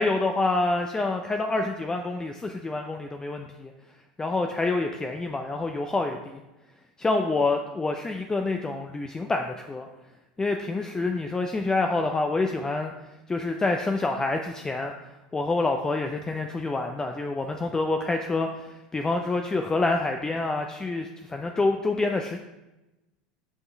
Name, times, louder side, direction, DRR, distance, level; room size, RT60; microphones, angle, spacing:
voice 1, 0.0-3.7 4.2-6.2 7.0-9.9 10.4-12.9 13.3-14.9 15.3-22.4, left 3 dB, 15° left, 4 dB, 0.5 m, -27 dB
8.0 x 5.4 x 3.4 m, 1.0 s
figure-of-eight pair, 75°, 4 cm